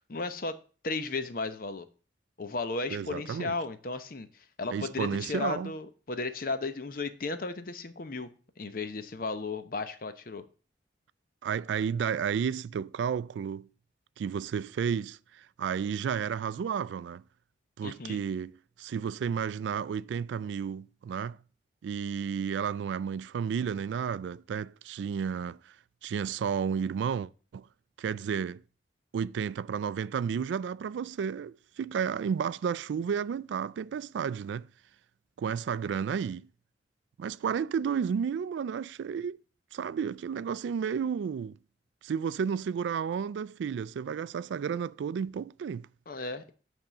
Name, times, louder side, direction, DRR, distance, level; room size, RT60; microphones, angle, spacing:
voice 1, 0.1-0.5 0.8-1.9 2.4-4.3 4.6-8.3 8.6-10.4 17.8-18.2 46.1-46.5, left 3 dB, 50° left, 0.7 m, -34 dB
voice 2, 2.9-3.6 4.7-5.7 11.4-13.7 14.2-17.2 17.8-21.4 21.8-25.6 26.0-27.7 28.0-28.6 29.1-34.7 35.4-36.5 37.2-39.4 39.7-41.6 42.0-45.9, right 7 dB, 80° right, 0.3 m, -32 dB
8.7 x 3.6 x 6.5 m
head